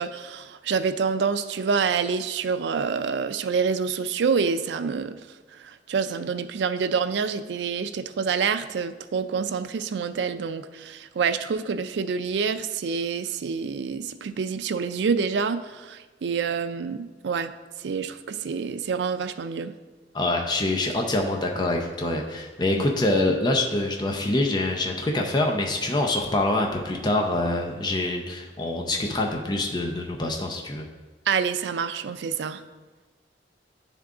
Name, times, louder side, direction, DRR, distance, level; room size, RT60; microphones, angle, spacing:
voice 1, 0.0-17.5 17.8-19.7 31.3-32.6, right 5 dB, 75° right, 10 dB, 0.4 m, -27 dB
voice 2, 20.1-30.8, left 2 dB, 25° left, 1 dB, 0.5 m, -25 dB
10.0 x 3.6 x 3.7 m, 1.3 s
head